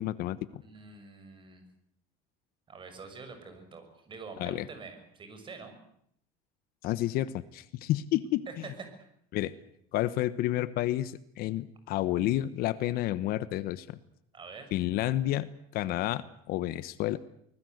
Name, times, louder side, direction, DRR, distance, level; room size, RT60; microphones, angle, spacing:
voice 1, 0.0-0.6 4.4-4.6 6.8-8.4 9.3-9.5 9.9-14.0 14.7-15.5 15.7-17.2, left 14 dB, 60° left, 15 dB, 1.1 m, -30 dB
voice 2, 0.6-1.6 2.7-5.8 8.5-9.0 14.3-14.7, right 4 dB, 30° right, 7 dB, 6.5 m, -46 dB
24.5 x 20.5 x 8.0 m, 0.71 s
cardioid pair, 130°, 18 cm